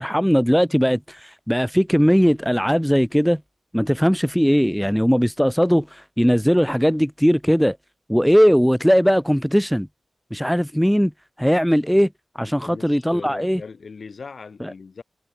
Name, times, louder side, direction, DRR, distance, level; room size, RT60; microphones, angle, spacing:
voice 1, 0.0-3.4 3.7-7.8 8.1-9.9 10.3-11.1 11.4-12.1 12.4-13.6 14.6-14.7, equal, ahead, 0.4 m, -19 dB
voice 2, 12.6-15.0, left 5 dB, 65° left, 4.5 m, -39 dB
cardioid pair, 55°, 0 cm